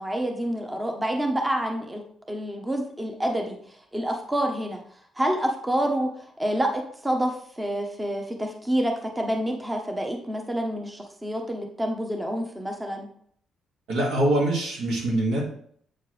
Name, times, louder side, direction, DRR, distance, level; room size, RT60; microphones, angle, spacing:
voice 1, 0.0-3.6 3.9-4.8 5.2-6.1 6.4-13.1, right 1 dB, 15° right, 3 dB, 0.9 m, -28 dB
voice 2, 13.9-15.4, right 1 dB, 85° right, -2 dB, 2.2 m, -23 dB
7.7 x 4.4 x 3.3 m, 0.63 s
cardioid pair, 90°, 0 cm